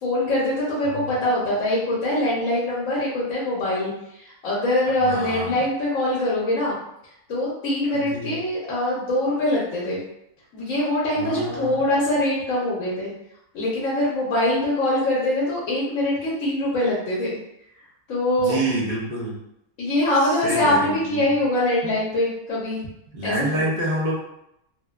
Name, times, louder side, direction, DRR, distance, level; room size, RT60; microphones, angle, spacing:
voice 1, 0.0-3.9 4.2-6.8 7.3-10.0 10.5-13.1 13.5-17.4 18.1-18.6 19.8-22.8 23.2-23.7, left 1 dB, 70° left, -6 dB, 1.0 m, -23 dB
voice 2, 4.9-5.6 7.9-8.4 11.2-11.8 18.4-19.4 20.2-21.4 21.8-21.9 23.1-24.2, right 1 dB, 50° right, -5 dB, 0.6 m, -28 dB
2.9 x 2.1 x 2.3 m, 0.81 s
omnidirectional pair, 1.5 m